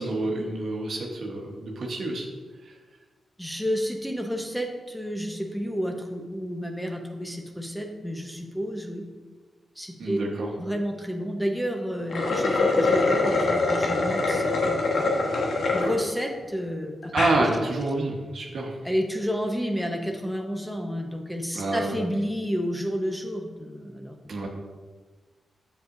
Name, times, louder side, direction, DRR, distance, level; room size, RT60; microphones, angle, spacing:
voice 1, 0.0-2.3 10.0-10.5 17.1-18.7 21.5-21.9 24.3-24.5, right 2 dB, 70° right, 1 dB, 1.2 m, -27 dB
voice 2, 3.4-9.1 9.8-10.2 10.6-14.9 15.7-17.1 17.4-17.5 18.8-24.5, equal, ahead, 2 dB, 1.0 m, -31 dB
sound 1, 12.0-15.9 16.4-16.5 17.0-17.4, left 3 dB, 75° left, 1.3 m, -23 dB
7.7 x 7.0 x 2.7 m, 1.3 s
cardioid pair, 60°, 0 cm